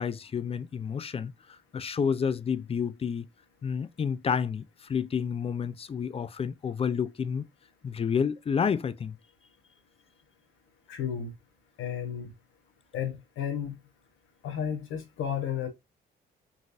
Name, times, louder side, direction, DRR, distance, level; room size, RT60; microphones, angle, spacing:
voice 1, 0.0-1.3 1.7-3.3 3.6-7.5 7.8-9.2, left 6 dB, 30° left, 0.4 m, -30 dB
voice 2, 10.9-11.3 11.8-12.3 12.9-13.8 14.4-15.7, left 8 dB, 85° left, 1.0 m, -32 dB
3.9 x 2.5 x 2.4 m
cardioid pair, 90°, 20 cm